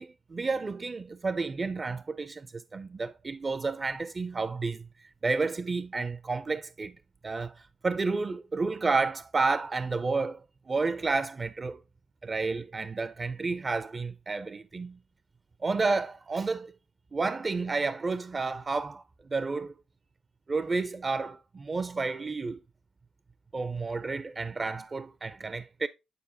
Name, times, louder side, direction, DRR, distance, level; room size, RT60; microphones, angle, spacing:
voice 1, 0.0-4.8 5.2-6.9 7.2-10.4 10.7-11.8 12.2-15.0 15.6-16.7 17.1-19.0 19.3-19.7 20.5-22.6 23.5-25.9, right 3 dB, 35° right, 0.4 m, -31 dB
9.4 x 4.7 x 2.7 m
supercardioid pair, 55°, 0 cm